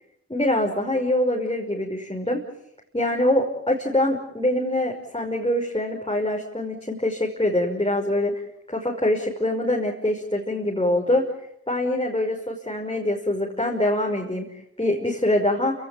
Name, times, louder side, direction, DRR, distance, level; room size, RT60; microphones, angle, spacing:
voice 1, 0.3-2.4 2.9-11.3 11.7-14.5 14.8-15.7, left 1 dB, 20° left, -1 dB, 5.8 m, -24 dB
29.5 x 17.5 x 8.9 m, 0.78 s
cardioid pair, 40°, 29 cm